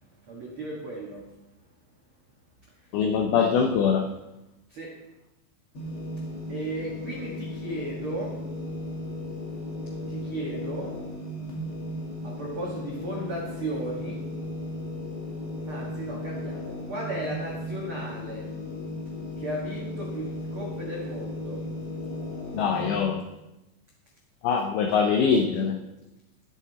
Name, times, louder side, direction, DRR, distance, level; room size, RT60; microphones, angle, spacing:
voice 1, 0.3-1.2 4.7-4.9 6.5-8.4 10.1-10.9 12.2-14.2 15.7-18.5 19.4-21.6, right 2 dB, 80° right, -3 dB, 1.2 m, -35 dB
voice 2, 2.9-4.0 22.5-23.2 24.4-25.8, left 6 dB, 80° left, 4 dB, 2.2 m, -23 dB
sound 1, 5.7-23.0, left 1 dB, 40° left, 2.2 m, -36 dB
13.0 x 8.2 x 4.1 m, 0.96 s
omnidirectional pair, 5.3 m